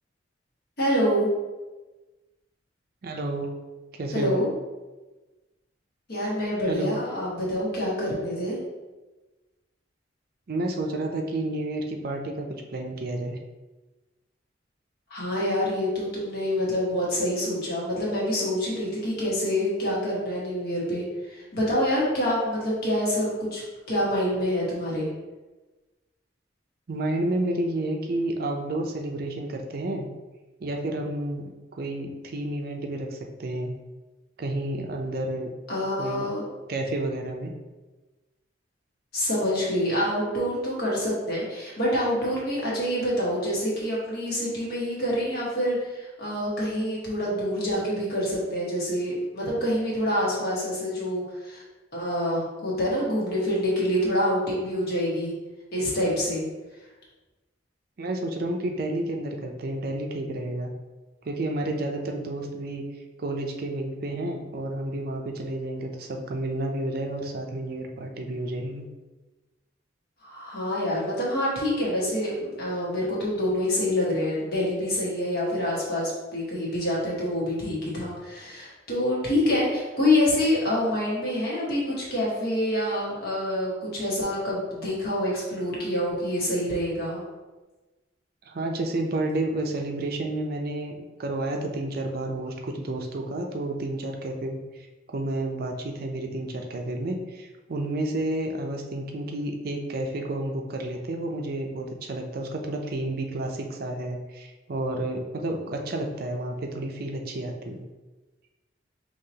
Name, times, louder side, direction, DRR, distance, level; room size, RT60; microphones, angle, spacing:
voice 1, 0.8-1.3 4.1-4.5 6.1-8.6 15.1-25.1 35.7-36.4 39.1-51.6 51.9-55.3 55.7-56.4 70.2-87.2, left 1 dB, 55° left, -5 dB, 1.4 m, -26 dB
voice 2, 3.0-3.5 3.9-4.4 6.7-6.9 10.5-13.4 26.9-30.1 30.6-33.7 34.4-35.5 35.9-36.3 36.7-37.5 58.0-60.7 61.2-62.8 63.2-68.8 88.5-107.8, right 1 dB, 50° right, 2 dB, 0.5 m, -30 dB
5.5 x 2.9 x 2.8 m, 1.2 s
head